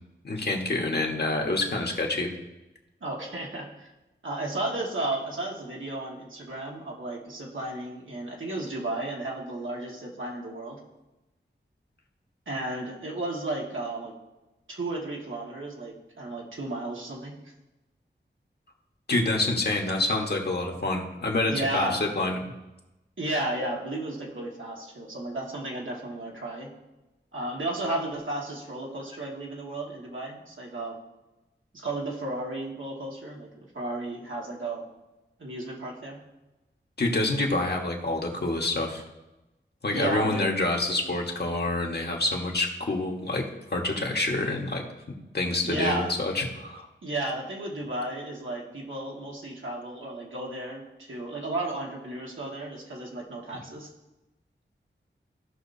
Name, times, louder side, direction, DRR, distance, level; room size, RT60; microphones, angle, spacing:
voice 1, 0.2-2.3 19.1-22.4 37.0-39.0 39.8-43.4 43.7-44.8 45.3-46.9, left 2 dB, 55° left, 0 dB, 1.5 m, -27 dB
voice 2, 3.0-3.9 4.2-10.8 12.5-14.1 14.7-17.4 21.5-22.0 23.2-26.7 27.3-31.0 31.7-34.8 35.4-36.2 39.9-40.5 45.6-46.1 47.0-53.9, right 2 dB, 80° right, -3 dB, 1.9 m, -33 dB
16.0 x 5.8 x 2.8 m, 1.0 s
wide cardioid pair, 85°, 20 cm